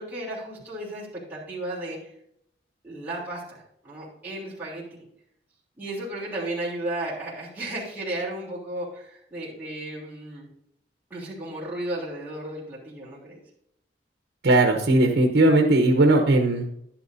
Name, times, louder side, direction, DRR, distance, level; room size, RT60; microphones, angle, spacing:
voice 1, 0.0-2.1 2.8-5.0 5.8-10.5 11.1-13.4, right 1 dB, 10° right, -9 dB, 3.2 m, -34 dB
voice 2, 14.4-16.6, right 2 dB, 65° right, 3 dB, 1.0 m, -18 dB
11.0 x 10.0 x 2.7 m, 0.74 s
head